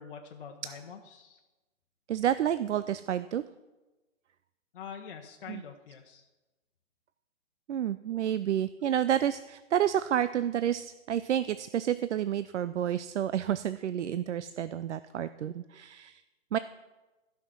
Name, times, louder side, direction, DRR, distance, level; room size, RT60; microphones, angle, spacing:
voice 1, 0.0-1.4 4.7-6.3, left 7 dB, 45° left, 1 dB, 1.0 m, -45 dB
voice 2, 2.1-3.4 5.5-5.6 7.7-16.2 16.5-16.6, right 10 dB, 65° right, 14 dB, 0.5 m, -30 dB
14.0 x 5.9 x 6.2 m, 1.1 s
hypercardioid pair, 155°, 38 cm